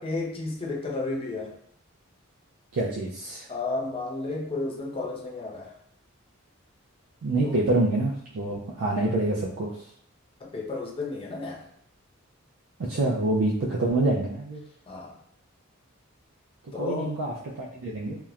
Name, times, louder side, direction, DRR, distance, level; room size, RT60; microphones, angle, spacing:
voice 1, 0.0-1.5 3.5-5.8 7.4-7.6 10.4-11.7 14.9-15.2 16.7-17.2, left 3 dB, 25° left, 0 dB, 0.4 m, -32 dB
voice 2, 2.7-3.5 7.2-9.7 12.8-14.6 16.7-18.2, right 2 dB, 75° right, -4 dB, 0.4 m, -26 dB
2.8 x 2.1 x 2.3 m, 0.65 s
head